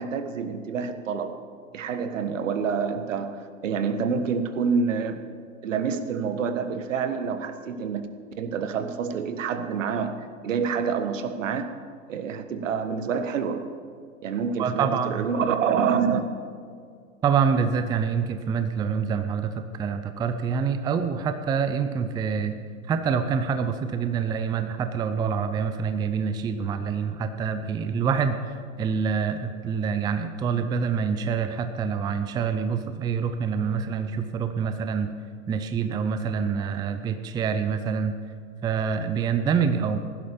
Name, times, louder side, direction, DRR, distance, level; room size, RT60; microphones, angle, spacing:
voice 1, 0.0-1.4 1.7-5.2 5.6-8.1 8.4-11.8 12.1-13.7 14.2-16.3, right 6 dB, 70° right, 10 dB, 1.4 m, -27 dB
voice 2, 14.6-15.3 17.2-22.6 22.9-35.1 35.5-38.1 38.6-40.0, right 6 dB, 10° right, 9 dB, 0.5 m, -26 dB
16.0 x 11.5 x 5.3 m, 2.1 s
hypercardioid pair, 110°, 40 cm